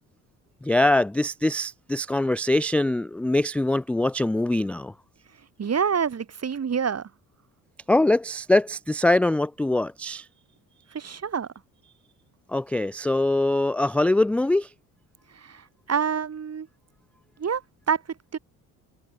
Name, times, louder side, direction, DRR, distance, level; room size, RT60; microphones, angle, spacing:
voice 1, 0.6-4.9 7.9-10.3 12.5-14.7, left 2 dB, 5° left, 0.3 m, -23 dB
voice 2, 5.6-7.1 10.9-11.5 15.3-16.7 17.4-18.0 18.3-18.4, right 7 dB, 40° right, 3.3 m, -27 dB
supercardioid pair, 75°, 39 cm